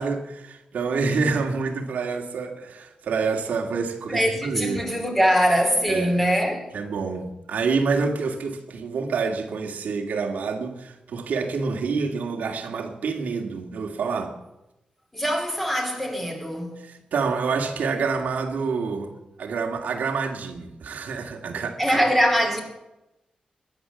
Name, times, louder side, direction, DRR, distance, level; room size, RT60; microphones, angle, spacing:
voice 1, 0.0-4.9 5.9-6.2 6.7-14.4 16.8-19.1 19.4-22.0, right 4 dB, 90° right, 2.1 m, -27 dB
voice 2, 4.1-6.6 15.1-16.8 21.8-22.6, equal, 10° left, 3.1 m, -22 dB
21.0 x 9.5 x 7.0 m
wide cardioid pair, 170°, 3 cm